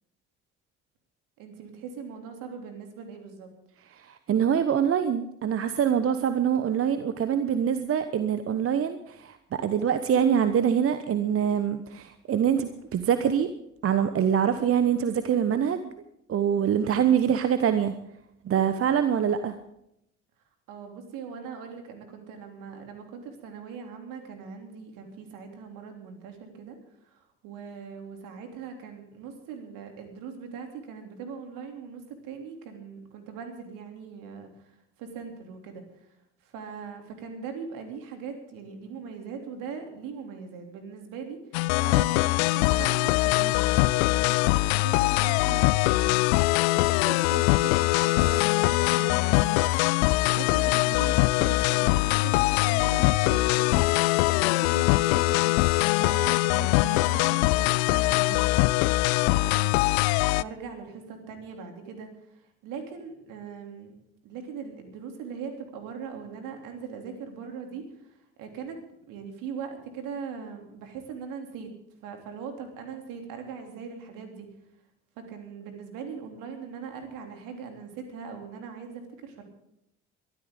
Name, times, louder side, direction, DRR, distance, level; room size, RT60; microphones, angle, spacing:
voice 1, 1.4-3.5 20.7-26.8 27.0-36.1 36.4-60.0 60.3-63.9 64.2-68.8 69.1-71.7 72.0-74.5 75.2-79.4, right 6 dB, 60° right, 4 dB, 3.2 m, -41 dB
voice 2, 3.9-13.5 13.8-15.9 16.3-17.9 18.4-19.5, right 8 dB, 40° right, 11 dB, 1.0 m, -24 dB
sound 1, 41.5-60.4, left 21 dB, 65° left, 0.5 m, -22 dB
23.0 x 12.5 x 3.8 m, 0.79 s
figure-of-eight pair, 50°, 36 cm